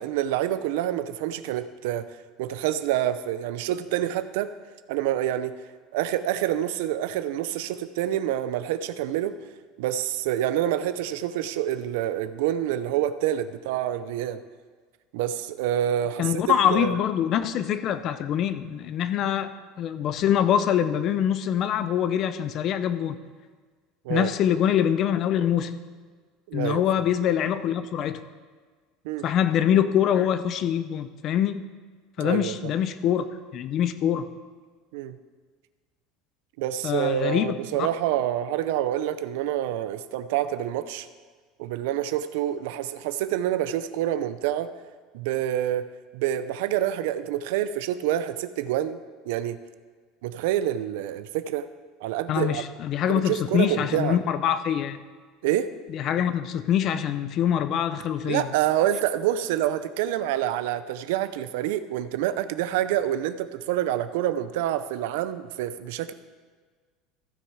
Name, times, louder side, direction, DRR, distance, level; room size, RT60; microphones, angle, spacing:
voice 1, 0.0-2.1 2.4-4.5 4.9-5.5 5.9-9.3 9.8-14.4 15.1-16.4 16.7-16.9 24.0-24.3 26.5-26.8 29.0-29.3 32.2-32.7 34.9-35.2 36.6-41.1 41.6-44.7 45.1-45.9 46.1-49.0 49.3-49.6 50.2-51.7 52.0-52.6 53.1-54.2 55.4-55.7 58.2-66.1, right 12 dB, 75° right, 13 dB, 0.6 m, -27 dB
voice 2, 16.2-19.5 19.8-23.2 24.1-25.8 26.5-28.2 29.2-31.6 32.2-33.2 33.5-34.3 36.8-37.9 52.3-55.0 55.9-58.5, left 9 dB, 35° left, 12 dB, 0.5 m, -24 dB
15.0 x 6.6 x 4.8 m, 1.5 s
cardioid pair, 165°, 0 cm